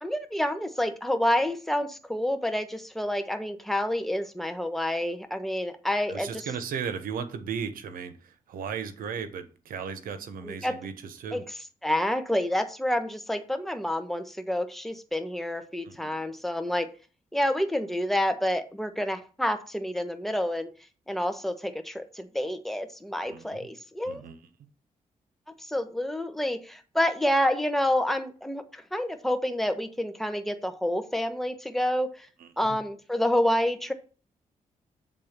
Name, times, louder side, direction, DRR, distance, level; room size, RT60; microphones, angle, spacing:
voice 1, 0.0-6.4 10.4-10.8 11.3-11.4 11.8-16.9 17.3-20.7 21.1-24.2 25.7-32.1 32.6-33.9, left 1 dB, ahead, 7 dB, 1.2 m, -28 dB
voice 2, 6.1-11.4 15.8-16.1 23.2-23.7 24.1-24.4 32.4-32.5, right 6 dB, 85° right, 10 dB, 1.0 m, -36 dB
7.6 x 3.7 x 6.6 m, 0.37 s
cardioid pair, 65°, 14 cm